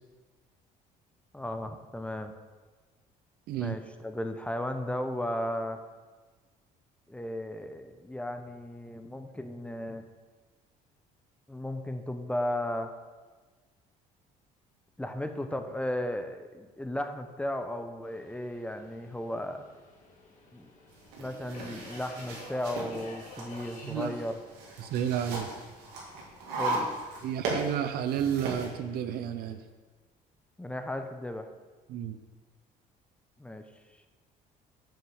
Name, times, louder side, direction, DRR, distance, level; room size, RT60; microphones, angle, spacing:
voice 1, 1.3-2.3 3.6-5.8 7.1-10.0 11.5-12.9 15.0-19.6 20.5-20.7 21.2-24.4 26.5-26.9 30.6-31.5 33.4-33.6, left 1 dB, 5° left, 7 dB, 0.8 m, -35 dB
Subway metro underground, 18.0-29.6, left 2 dB, 50° left, 2.3 m, -53 dB
sound 1, 20.9-28.7, right 2 dB, 90° right, 2.1 m, -37 dB
voice 2, 23.8-24.2 24.8-25.5 27.2-29.6 31.9-32.2, right 9 dB, 70° right, 10 dB, 0.7 m, -31 dB
7.6 x 5.5 x 7.0 m, 1.4 s
cardioid pair, 95°, 16 cm